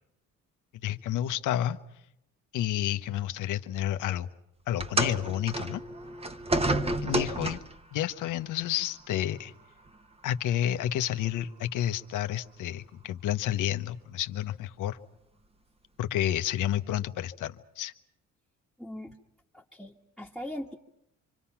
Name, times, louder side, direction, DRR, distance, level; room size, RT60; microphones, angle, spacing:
voice 1, 0.8-1.8 2.5-4.3 4.7-5.8 7.0-7.6 7.9-9.5 10.2-15.0 16.0-17.9, left 12 dB, 85° left, 10 dB, 1.1 m, -30 dB
sound 1, 4.8-7.8 8.8-9.0 9.9-10.0, right 2 dB, 20° right, 1.2 m, -30 dB
voice 2, 18.8-19.2 19.5-20.8, left 1 dB, ahead, -1 dB, 1.6 m, -40 dB
27.0 x 25.0 x 5.9 m, 0.81 s
cardioid pair, 90°, 30 cm